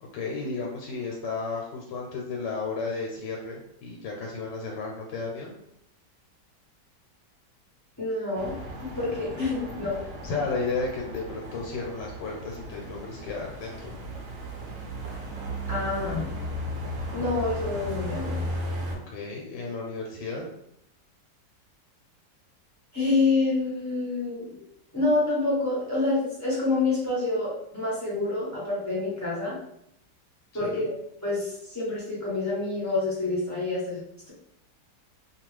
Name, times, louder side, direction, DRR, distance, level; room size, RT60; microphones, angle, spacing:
voice 1, 0.0-5.5 10.2-13.9 18.9-20.5 30.6-30.9, left 4 dB, 90° left, -1 dB, 1.3 m, -33 dB
voice 2, 8.0-8.5 8.8-10.0 15.7-16.2 17.1-18.4 22.9-24.6 24.9-29.6 30.5-30.9 31.2-34.3, left 3 dB, 15° left, -8 dB, 0.8 m, -27 dB
sound 1, 8.3-18.9, equal, 65° right, 1.1 m, -36 dB
2.8 x 2.3 x 3.1 m, 0.74 s
omnidirectional pair, 1.9 m